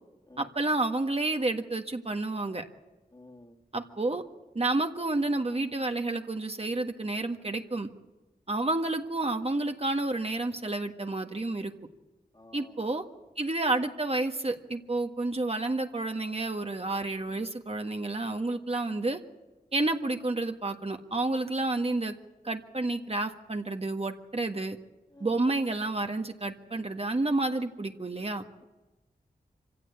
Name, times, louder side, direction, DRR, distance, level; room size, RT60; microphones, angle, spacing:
voice 1, 0.4-2.6 3.7-4.2 4.5-7.9 8.5-11.7 12.5-13.0 13.4-19.2 19.7-22.1 22.4-24.8 25.2-28.4, right 2 dB, 40° right, 5 dB, 1.6 m, -30 dB
voice 2, 3.1-3.6 12.3-12.9 25.1-25.4, left 2 dB, 25° left, 2 dB, 2.3 m, -52 dB
25.0 x 16.0 x 8.5 m, 1.1 s
cardioid pair, 45°, 16 cm